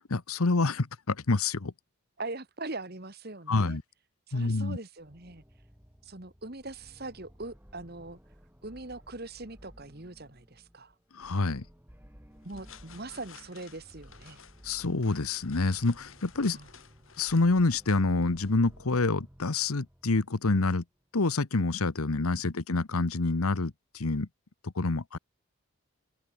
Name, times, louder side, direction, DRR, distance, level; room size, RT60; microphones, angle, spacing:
voice 1, 0.1-1.7 3.5-3.8 4.3-4.8 11.1-11.6 14.6-16.6 17.2-20.8 21.1-24.3 24.6-25.2, left 3 dB, 85° left, 1.1 m, -27 dB
voice 2, 2.2-3.8 4.3-5.4 6.0-8.2 8.6-10.9 12.4-14.4 16.4-16.7 22.3-22.6, right 2 dB, 45° right, 2.0 m, -41 dB
sound 1, 5.0-20.7, equal, 10° right, 3.0 m, -56 dB
sound 2, 12.3-19.2, left 7 dB, 70° left, 3.2 m, -54 dB
open air
head